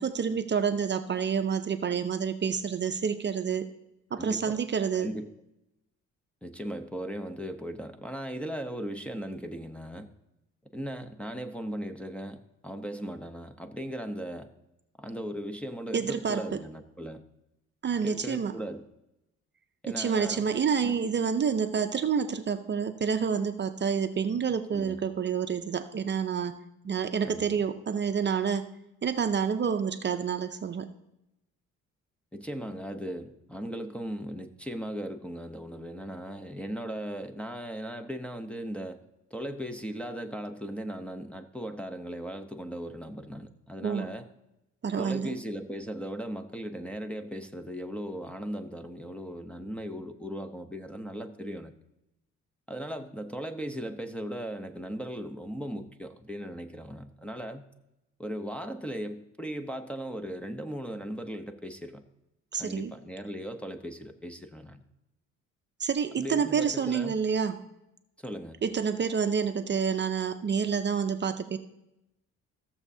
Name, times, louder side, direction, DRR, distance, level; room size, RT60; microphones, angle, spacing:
voice 1, 0.0-3.7 4.1-5.1 15.9-16.6 17.8-18.5 20.0-26.6 26.8-28.7 29.0-30.9 43.8-44.1 44.8-45.4 62.5-62.9 65.8-67.6 68.6-71.6, right 6 dB, 35° right, 8 dB, 0.6 m, -28 dB
voice 2, 4.1-4.6 5.0-5.3 6.4-10.1 10.7-14.5 15.0-17.2 18.0-18.8 19.8-20.4 20.8-21.0 24.7-25.0 27.2-27.6 32.3-39.0 39.3-44.3 45.0-51.7 52.7-57.7 58.2-62.0 62.6-64.8 66.2-67.1 68.2-68.6, equal, 5° left, 3 dB, 0.7 m, -37 dB
15.0 x 7.1 x 2.7 m, 0.88 s
cardioid pair, 90°, 30 cm